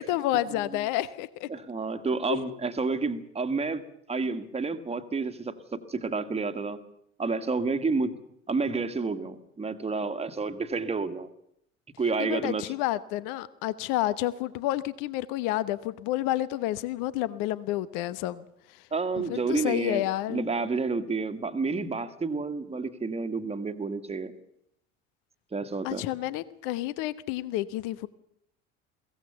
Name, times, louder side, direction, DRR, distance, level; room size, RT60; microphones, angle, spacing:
voice 1, 0.0-1.5 2.3-2.6 12.2-18.8 19.2-20.5 25.8-28.1, left 15 dB, 55° left, 17 dB, 1.0 m, -30 dB
voice 2, 1.5-3.8 4.1-6.8 7.2-8.1 8.5-11.3 12.0-12.7 18.9-24.3 25.5-26.0, right 4 dB, 15° right, 8 dB, 1.7 m, -30 dB
22.5 x 16.5 x 7.0 m, 0.74 s
figure-of-eight pair, 65°, 38 cm